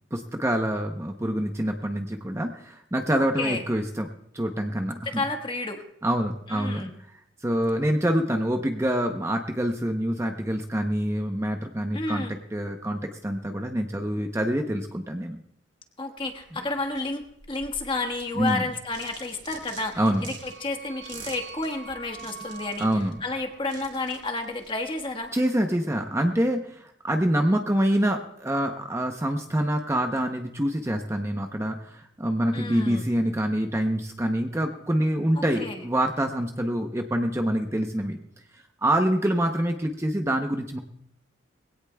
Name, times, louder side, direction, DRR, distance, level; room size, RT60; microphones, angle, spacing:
voice 1, 0.1-4.1 4.3-5.2 6.0-6.9 7.4-12.2 12.5-15.4 18.3-18.6 20.0-20.3 22.8-23.2 25.3-38.2 38.8-40.8, right 1 dB, 15° right, 4 dB, 0.7 m, -26 dB
voice 2, 5.0-5.8 6.5-6.9 11.9-12.3 16.0-22.9 23.2-25.3 32.5-33.0 35.3-35.9, left 2 dB, 25° left, 5 dB, 1.4 m, -31 dB
sound 1, 16.2-25.3, right 4 dB, 30° right, 3.9 m, -48 dB
sound 2, 19.7-24.1, right 5 dB, 75° right, 4.7 m, -46 dB
22.0 x 17.0 x 2.3 m, 0.74 s
head